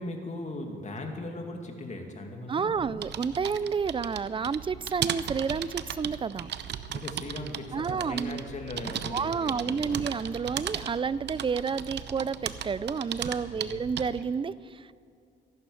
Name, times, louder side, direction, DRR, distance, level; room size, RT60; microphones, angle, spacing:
voice 1, 0.0-3.0 6.9-10.2 13.5-13.8, left 2 dB, 35° left, 3 dB, 2.4 m, -39 dB
voice 2, 2.5-6.5 7.7-8.4 9.1-14.9, right 5 dB, 25° right, 18 dB, 0.4 m, -30 dB
sound 1, 2.7-14.3, right 9 dB, 60° right, 0.8 m, -37 dB
14.5 x 11.5 x 7.1 m, 2.4 s
cardioid pair, 90°, 20 cm